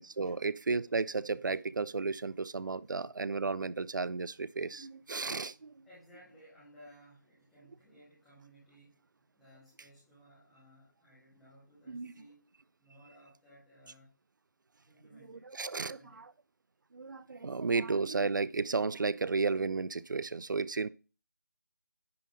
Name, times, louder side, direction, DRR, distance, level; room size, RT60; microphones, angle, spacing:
voice 1, 0.0-5.7 11.9-12.1 15.3-16.3 16.9-20.9, right 4 dB, 80° right, 0.4 m, -33 dB
voice 2, 5.9-9.0 9.3-12.4 12.8-14.1 14.8-16.3, equal, ahead, 0.5 m, -59 dB
10.0 x 3.7 x 3.9 m
figure-of-eight pair, 175°, 10 cm